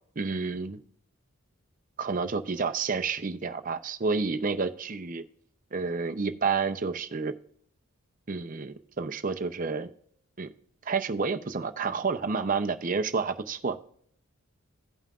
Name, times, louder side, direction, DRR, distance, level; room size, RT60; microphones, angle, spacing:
voice 1, 0.2-0.8 2.0-5.2 5.7-7.3 8.3-9.9 10.4-10.5 10.9-13.8, right 4 dB, 35° right, 8 dB, 0.6 m, -29 dB
16.5 x 5.6 x 2.4 m, 0.65 s
head